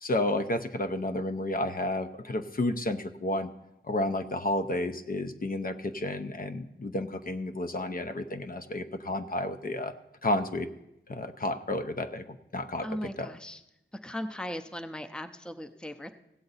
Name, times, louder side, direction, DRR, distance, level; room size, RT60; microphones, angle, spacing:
voice 1, 0.0-3.5 3.9-9.9 10.2-10.7 11.1-12.9 13.2-13.3, left 1 dB, 45° left, 7 dB, 0.6 m, -31 dB
voice 2, 12.8-13.6 14.0-16.1, equal, 5° left, 8 dB, 0.6 m, -38 dB
16.5 x 7.8 x 4.0 m, 0.87 s
wide cardioid pair, 75°, 20 cm